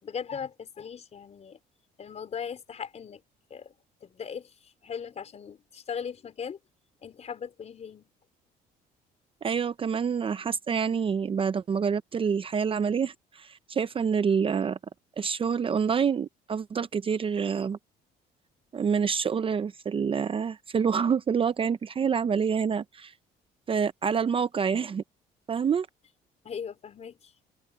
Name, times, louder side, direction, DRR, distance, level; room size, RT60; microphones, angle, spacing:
voice 1, 0.0-1.6 2.0-3.2 3.5-3.7 4.0-6.6 7.0-8.1 26.4-27.3, left 7 dB, 40° left, 4.1 m, -38 dB
voice 2, 9.4-14.8 15.2-17.8 18.7-23.1 23.7-25.0 25.5-25.9, right 6 dB, 30° right, 0.7 m, -27 dB
open air
cardioid pair, 110°, 17 cm